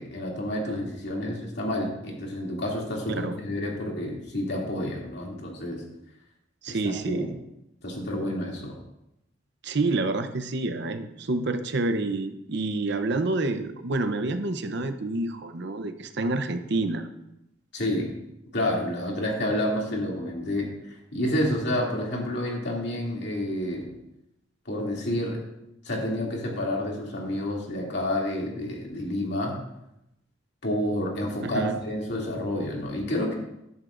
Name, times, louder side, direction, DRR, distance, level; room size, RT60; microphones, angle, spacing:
voice 1, 0.0-5.8 6.7-7.3 7.8-8.8 17.7-18.1 18.5-23.9 24.7-25.4 25.8-29.5 30.6-33.3, left 1 dB, 60° left, -2 dB, 2.6 m, -29 dB
voice 2, 6.6-7.4 9.6-17.1 31.4-31.8, right 2 dB, 60° right, 9 dB, 0.8 m, -28 dB
14.0 x 11.0 x 2.6 m, 0.84 s
head